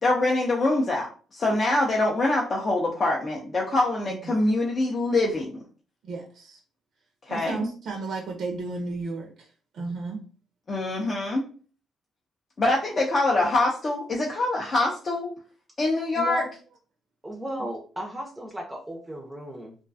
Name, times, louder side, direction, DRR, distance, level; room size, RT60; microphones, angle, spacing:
voice 1, 0.0-5.6 7.3-7.7 10.7-11.5 12.6-15.3 15.8-16.4, left 2 dB, 40° left, -2 dB, 0.5 m, -24 dB
voice 2, 6.0-6.6 7.3-9.5 9.7-10.2 16.0-16.1, right 3 dB, 65° right, 2 dB, 0.4 m, -33 dB
voice 3, 16.2-16.5 17.2-19.8, equal, 10° right, 0 dB, 0.5 m, -34 dB
2.4 x 2.2 x 2.5 m, 0.40 s
cardioid pair, 90°, 0 cm